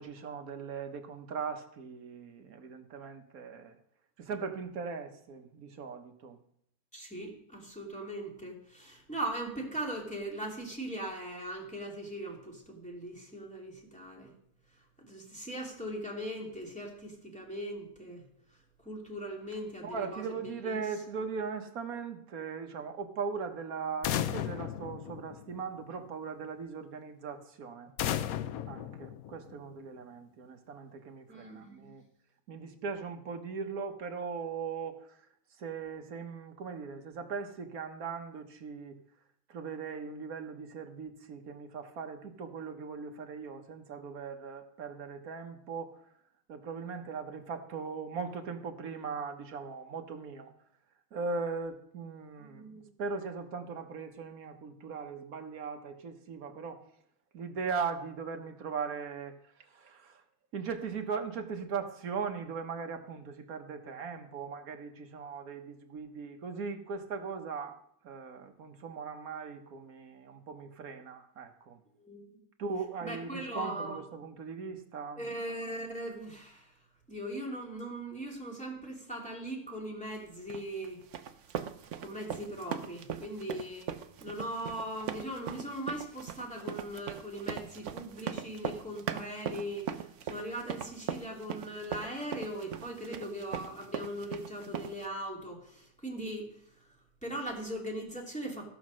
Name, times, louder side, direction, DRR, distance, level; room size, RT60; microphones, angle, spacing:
voice 1, 0.0-3.8 4.2-6.4 19.5-27.9 28.7-32.0 32.5-35.2 35.6-39.0 39.5-46.0 46.5-50.5 51.1-56.8 57.3-60.2 60.5-67.8 68.0-71.8 72.6-75.3, right 5 dB, 50° right, 1.4 m, -39 dB
voice 2, 6.9-14.3 15.0-18.2 18.8-20.2 20.6-20.8 31.3-31.9 52.5-52.9 72.0-72.2 73.0-74.0 75.2-76.7 77.1-81.0 82.0-83.9 84.2-96.5 97.2-98.7, right 1 dB, 5° left, 2.5 m, -39 dB
sound 1, 24.0-25.8 28.0-29.8, left 11 dB, 85° left, 0.7 m, -35 dB
sound 2, 80.5-95.1, right 8 dB, 80° right, 0.6 m, -39 dB
15.0 x 6.3 x 6.2 m
omnidirectional pair, 2.1 m